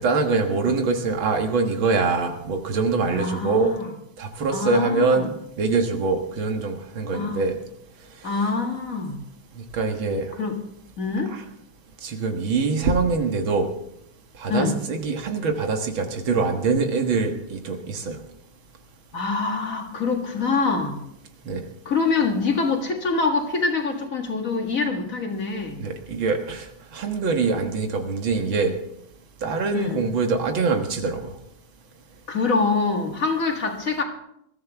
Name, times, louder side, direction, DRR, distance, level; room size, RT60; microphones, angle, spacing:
voice 1, 0.0-3.7 4.2-5.3 5.6-7.6 9.6-10.3 11.3-11.4 12.0-13.7 14.4-18.2 21.4-21.6 25.8-26.7 26.9-28.7 29.4-31.4, right 4 dB, 90° right, 5 dB, 2.4 m, -24 dB
voice 2, 3.1-3.9 4.5-5.3 7.1-7.4 8.2-9.2 10.4-10.6 11.0-11.3 14.5-14.8 19.1-21.0 21.9-25.9 29.7-30.0 32.3-34.0, left 4 dB, 45° left, 2 dB, 2.1 m, -25 dB
21.0 x 14.0 x 3.6 m, 0.76 s
omnidirectional pair, 2.1 m